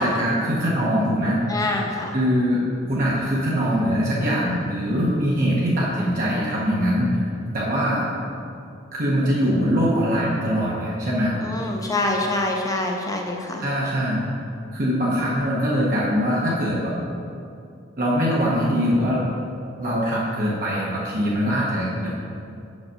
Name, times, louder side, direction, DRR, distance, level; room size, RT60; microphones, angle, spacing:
voice 1, 0.0-1.4 2.1-2.6 2.9-7.1 7.5-8.1 8.9-11.3 13.6-14.3 14.7-17.0 18.0-19.2 19.8-22.1, equal, 45° right, -6 dB, 0.9 m, -22 dB
voice 2, 1.5-2.2 11.4-13.6, left 2 dB, 20° left, 1 dB, 0.7 m, -25 dB
5.3 x 5.0 x 6.3 m, 2.5 s
head